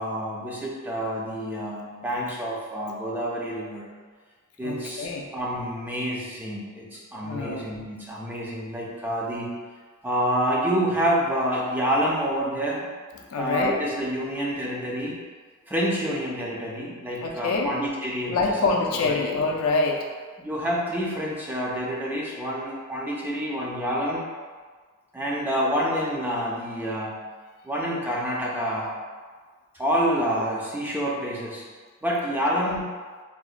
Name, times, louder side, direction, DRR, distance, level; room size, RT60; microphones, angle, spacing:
voice 1, 0.0-3.9 4.6-5.1 5.3-9.5 10.0-12.9 13.4-15.2 15.7-18.4 18.9-19.1 20.4-24.2 25.1-27.2 27.6-28.9 29.7-31.6 32.0-32.9, equal, 10° right, -5 dB, 0.4 m, -28 dB
voice 2, 4.6-5.3 7.2-7.7 13.3-13.8 17.2-17.8 18.3-20.1 32.6-32.7, left 3 dB, 70° left, 1 dB, 0.4 m, -25 dB
3.8 x 2.1 x 2.4 m, 1.5 s
head